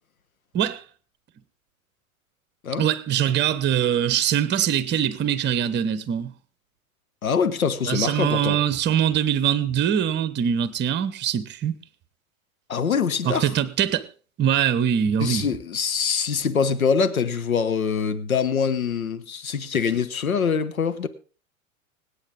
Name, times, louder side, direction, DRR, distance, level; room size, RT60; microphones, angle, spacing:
voice 1, 2.8-6.3 7.9-11.7 13.2-14.1 14.4-15.4, right 9 dB, 25° right, 1.1 m, -23 dB
voice 2, 7.2-8.6 12.7-13.5 15.2-21.1, left 6 dB, 75° left, 1.2 m, -24 dB
25.5 x 8.7 x 3.7 m
figure-of-eight pair, 90°, 43 cm